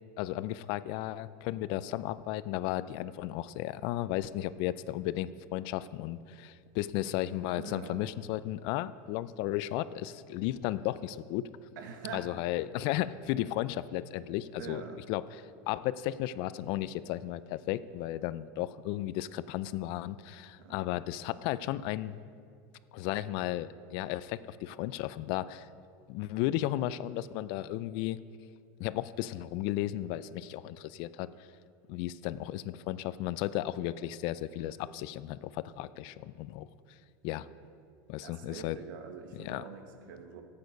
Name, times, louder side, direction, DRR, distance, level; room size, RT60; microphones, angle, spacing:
voice 1, 0.2-11.5 12.1-14.8 15.1-15.4 15.7-22.2 22.9-25.7 26.1-28.2 28.8-31.3 31.9-36.7 37.2-37.5 38.1-38.8 39.4-39.6, left 14 dB, 50° left, 16 dB, 0.4 m, -34 dB
voice 2, 7.6-8.0 11.8-12.3 14.6-15.0 20.6-20.9 38.2-40.4, right 6 dB, 80° right, 6 dB, 1.3 m, -44 dB
12.5 x 8.6 x 5.2 m, 2.3 s
supercardioid pair, 155°, 10 cm